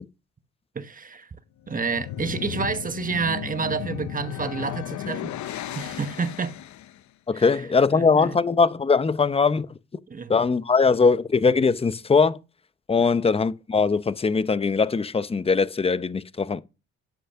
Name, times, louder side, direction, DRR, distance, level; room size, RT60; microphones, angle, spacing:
voice 1, 0.7-1.3 1.7-6.6 7.3-7.5 7.9-8.4 10.1-10.3 13.0-13.2, right 5 dB, 30° right, 1.2 m, -29 dB
sound 1, 1.6-7.0, left 11 dB, 70° left, 0.8 m, -34 dB
voice 2, 7.3-9.8 10.3-12.4 12.9-16.6, left 4 dB, 20° left, 0.7 m, -21 dB
10.5 x 8.0 x 5.7 m
cardioid pair, 90°, 30 cm